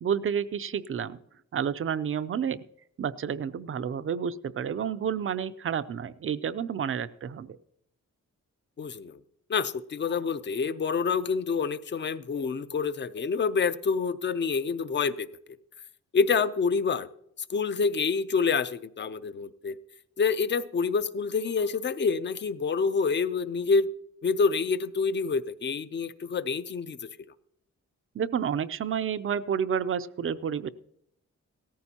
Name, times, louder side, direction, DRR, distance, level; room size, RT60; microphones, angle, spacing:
voice 1, 0.0-1.2 1.5-2.6 3.0-7.6 28.1-30.7, right 7 dB, 45° right, 15 dB, 0.5 m, -30 dB
voice 2, 8.8-9.2 9.5-15.3 16.1-17.1 17.5-19.8 20.2-23.9 24.2-27.1, left 5 dB, 40° left, 14 dB, 0.5 m, -27 dB
17.5 x 14.0 x 2.8 m, 0.76 s
wide cardioid pair, 135°, 29 cm